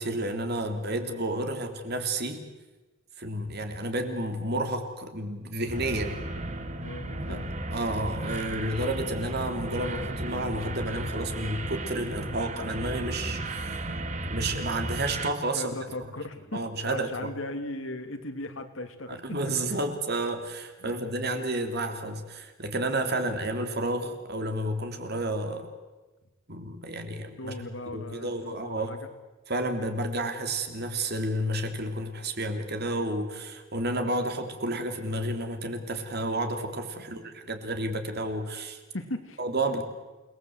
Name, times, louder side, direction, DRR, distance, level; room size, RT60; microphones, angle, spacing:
voice 1, 0.0-2.4 3.2-6.2 7.3-7.4 7.7-13.8 14.3-15.7 16.5-17.1 19.1-25.7 26.5-28.9 29.5-38.8 39.4-39.8, right 1 dB, 55° right, 6 dB, 3.2 m, -31 dB
sound 1, 5.7-15.3, right 1 dB, 35° right, 1.9 m, -34 dB
voice 2, 6.8-7.5 15.5-19.2 19.7-19.8 20.8-21.0 27.4-29.1 38.9-39.4, left 2 dB, 75° left, 7 dB, 2.6 m, -38 dB
29.0 x 19.5 x 8.0 m, 1.2 s
head